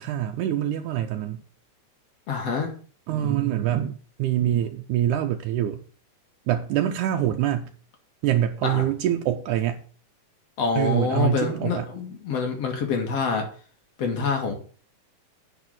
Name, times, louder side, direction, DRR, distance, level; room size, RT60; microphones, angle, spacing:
voice 1, 0.0-1.4 3.1-5.8 6.5-7.7 8.2-9.8 10.8-11.9, right 11 dB, 80° right, 5 dB, 2.1 m, -25 dB
voice 2, 2.3-2.7 8.6-8.8 10.6-13.4 14.0-14.5, left 5 dB, 55° left, 3 dB, 2.8 m, -26 dB
9.6 x 5.0 x 7.8 m, 0.42 s
omnidirectional pair, 3.7 m